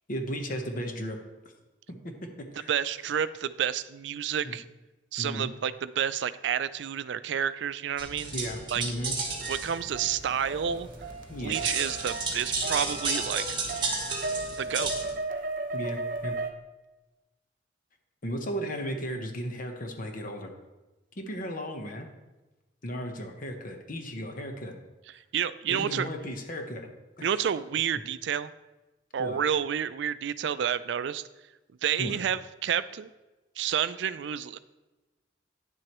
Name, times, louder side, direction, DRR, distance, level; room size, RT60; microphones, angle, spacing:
voice 1, 0.1-1.2 1.9-2.7 4.4-4.6 5.2-5.5 8.3-9.2 11.3-11.7 15.7-16.3 18.2-20.5 21.2-22.1 22.8-24.8 25.7-26.9 27.2-27.3 29.2-29.4 32.0-32.2, equal, 50° left, 4 dB, 1.0 m, -35 dB
voice 2, 2.7-4.6 5.1-8.3 8.7-8.8 9.5-10.9 11.4-13.4 14.6-15.0 25.3-26.1 27.2-28.5 29.1-31.2 31.8-33.1 33.6-34.6, right 8 dB, 70° right, 15 dB, 0.4 m, -29 dB
sound 1, 8.0-15.1, right 3 dB, 25° right, 1.5 m, -33 dB
sound 2, 9.1-16.5, right 3 dB, 50° right, 0.7 m, -36 dB
9.8 x 7.6 x 3.0 m, 1.1 s
head